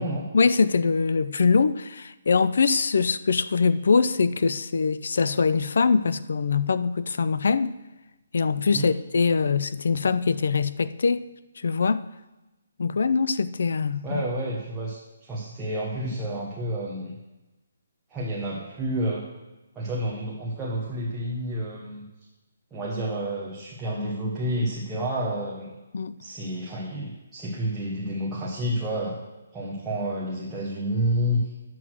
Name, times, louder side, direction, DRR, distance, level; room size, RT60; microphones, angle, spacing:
voice 1, 0.3-7.7 8.3-11.2 11.6-12.0 12.8-14.2 25.9-26.2, left 5 dB, 65° left, 0.4 m, -23 dB
voice 2, 14.0-17.2 18.1-19.2 19.7-22.1 22.7-25.7 26.2-29.2 29.5-31.5, right 1 dB, 5° right, 1.0 m, -29 dB
9.3 x 6.1 x 6.2 m
hypercardioid pair, 170°, 0 cm